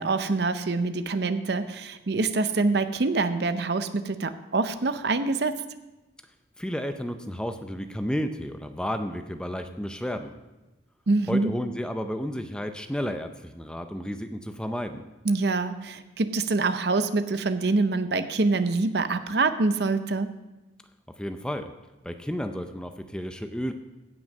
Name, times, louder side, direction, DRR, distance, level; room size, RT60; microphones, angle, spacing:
voice 1, 0.0-5.6 11.1-11.5 15.3-20.3, right 3 dB, 60° right, 11 dB, 0.6 m, -25 dB
voice 2, 6.6-10.3 11.3-15.0 21.2-21.7 22.0-23.7, equal, 5° left, 7 dB, 0.5 m, -32 dB
16.0 x 6.2 x 5.4 m, 1.1 s
head